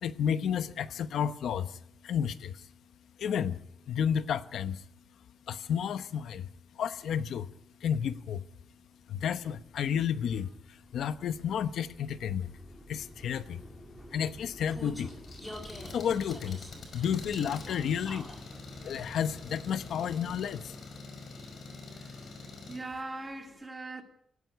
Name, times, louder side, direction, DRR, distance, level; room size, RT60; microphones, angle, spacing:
voice 1, 0.0-2.7 3.2-3.6 3.9-4.8 5.5-6.5 6.8-7.5 7.8-8.4 9.1-12.5 12.9-13.6 14.1-15.2 15.9-16.6 16.9-18.3 18.8-20.8, left 8 dB, 75° left, 0.9 m, -31 dB
Vehicle, 9.0-20.9, equal, 5° left, 3.6 m, -48 dB
Engine, 15.0-22.8, left 3 dB, 55° left, 5.1 m, -46 dB
voice 2, 21.9-22.4 22.7-24.0, right 2 dB, 15° right, 2.7 m, -41 dB
18.0 x 16.0 x 9.5 m
wide cardioid pair, 145°, 0 cm